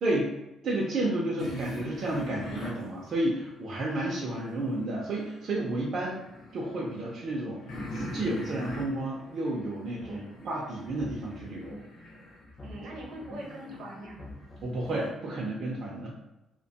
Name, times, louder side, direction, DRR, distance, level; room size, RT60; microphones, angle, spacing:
voice 1, 0.0-0.3 0.6-6.2 6.5-7.6 7.9-11.8 14.6-16.1, right 1 dB, 40° right, -4 dB, 0.4 m, -31 dB
sound 1, 1.4-4.7 5.1-15.1, left 1 dB, 65° left, 0.8 m, -43 dB
sound 2, 10.0-10.4 10.8-11.8 12.4-13.4 14.0-15.0, left 2 dB, 20° left, 0.5 m, -46 dB
voice 2, 12.6-14.2, right 1 dB, 70° right, -2 dB, 0.7 m, -43 dB
2.7 x 2.1 x 2.7 m, 0.96 s
cardioid pair, 180°, 0 cm